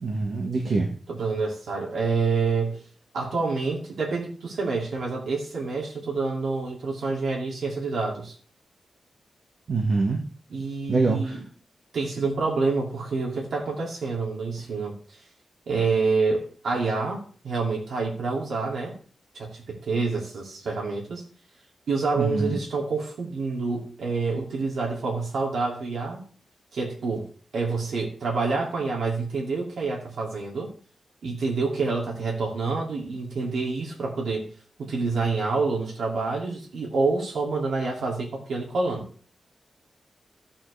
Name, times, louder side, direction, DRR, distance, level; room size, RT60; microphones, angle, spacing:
voice 1, 0.0-0.9 9.7-10.2 10.9-11.4 22.2-22.6, right 3 dB, 50° right, 1 dB, 1.6 m, -24 dB
voice 2, 1.1-2.8 3.1-8.3 10.5-11.4 11.9-15.0 15.7-19.0 19.3-21.2 21.9-26.2 26.7-27.3 27.5-30.7 31.2-34.5 34.8-39.0, right 4 dB, 80° right, -2 dB, 2.8 m, -27 dB
14.5 x 8.7 x 3.4 m, 0.43 s
wide cardioid pair, 175°, 0 cm